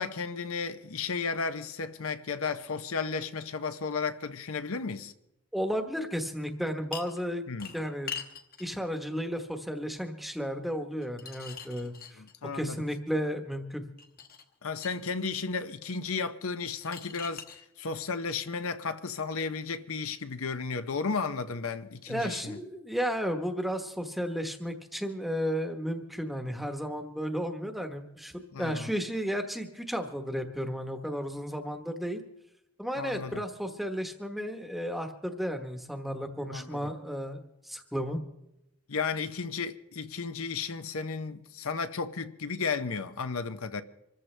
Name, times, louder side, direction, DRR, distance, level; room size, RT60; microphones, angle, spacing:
voice 1, 0.0-5.1 7.5-7.7 12.2-12.8 14.6-17.4 17.8-22.6 28.5-28.9 33.0-33.4 36.5-36.9 38.9-43.8, left 5 dB, 70° left, 0.7 m, -34 dB
voice 2, 5.5-7.4 7.7-8.1 8.6-12.2 12.5-13.8 22.1-28.3 28.6-32.2 32.8-37.4 37.6-38.2, equal, ahead, 1.1 m, -33 dB
sound 1, 6.9-7.2 7.6-8.7 11.0-12.6 14.0-15.1 16.7-17.6 19.3-19.4, left 6 dB, 40° left, 1.2 m, -42 dB
25.5 x 14.0 x 3.3 m
head